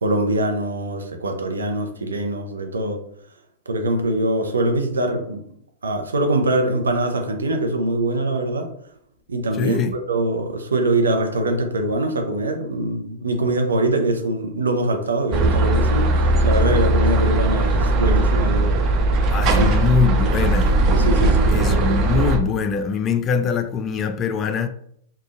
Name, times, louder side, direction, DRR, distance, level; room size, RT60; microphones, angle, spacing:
voice 1, 0.0-3.0 3.7-5.4 5.8-8.7 9.3-18.9 19.5-19.7 21.0-22.0, right 1 dB, 75° right, 0.7 m, -23 dB
voice 2, 9.6-9.9 19.3-20.7 21.5-24.7, left 5 dB, 30° left, 0.3 m, -22 dB
sound 1, 15.3-22.4, right 2 dB, 35° right, 0.5 m, -18 dB
5.0 x 2.4 x 2.4 m
figure-of-eight pair, 100°, 0 cm